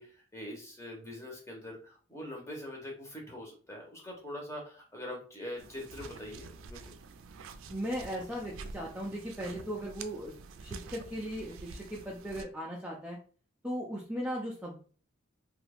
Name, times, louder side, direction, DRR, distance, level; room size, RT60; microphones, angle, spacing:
voice 1, 0.0-6.9, left 1 dB, 15° left, -1 dB, 0.8 m, -43 dB
sound 1, 5.6-12.4, right 4 dB, 80° right, 0.4 m, -48 dB
voice 2, 7.7-13.2 13.6-14.8, equal, 5° right, -4 dB, 0.4 m, -37 dB
2.9 x 2.3 x 3.4 m, 0.40 s
head